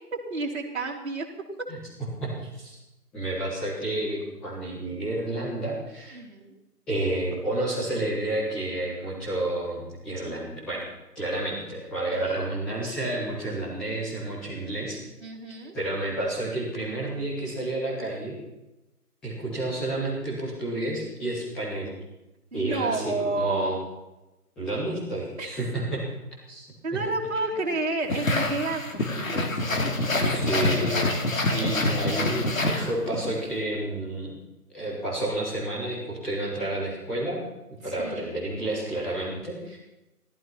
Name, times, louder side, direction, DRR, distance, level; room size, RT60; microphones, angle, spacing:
voice 1, 0.1-1.3 6.1-6.5 12.1-12.5 15.2-15.7 22.5-23.8 25.4-25.5 26.8-29.5 37.8-38.4, right 3 dB, 45° right, -2 dB, 3.3 m, -30 dB
voice 2, 2.2-2.8 3.1-6.2 6.9-10.8 11.1-15.0 15.7-18.3 19.2-21.9 22.5-23.8 24.5-26.0 26.5-26.7 29.5-29.6 30.3-31.1 31.5-34.3 34.7-37.4 37.8-39.8, right 1 dB, ahead, -10 dB, 1.5 m, -30 dB
sound 1, 28.1-33.3, left 2 dB, 55° left, 2.9 m, -26 dB
17.0 x 14.0 x 5.9 m, 1.0 s
figure-of-eight pair, 165°, 47 cm